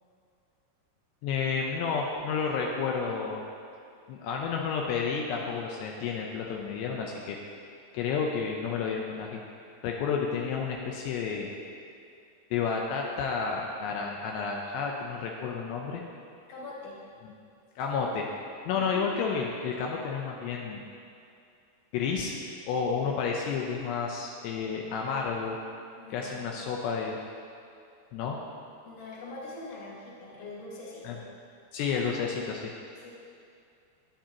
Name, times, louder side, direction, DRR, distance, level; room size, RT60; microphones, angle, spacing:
voice 1, 1.2-3.4 4.1-7.4 7.9-9.4 9.8-11.5 12.5-16.0 17.8-18.3 18.7-20.8 21.9-22.4 22.7-25.6 26.1-27.2 28.1-28.4 31.0-31.2 31.7-32.7, left 5 dB, 80° left, 0 dB, 2.8 m, -31 dB
voice 2, 16.5-17.0 18.7-19.2 26.0-26.5 28.8-31.2 33.0-33.1, left 2 dB, 45° left, -6 dB, 2.7 m, -43 dB
16.5 x 10.0 x 2.9 m, 2.5 s
omnidirectional pair, 5.0 m